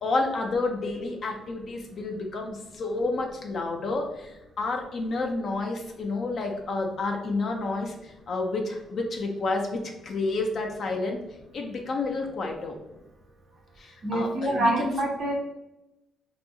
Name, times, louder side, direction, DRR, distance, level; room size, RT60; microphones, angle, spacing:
voice 1, 0.0-11.2 11.5-12.8 13.8-14.9, left 3 dB, 40° left, 2 dB, 0.4 m, -30 dB
voice 2, 14.0-15.3, right 1 dB, 40° right, -3 dB, 0.4 m, -26 dB
2.7 x 2.3 x 2.6 m, 0.93 s
cardioid pair, 160°, 0 cm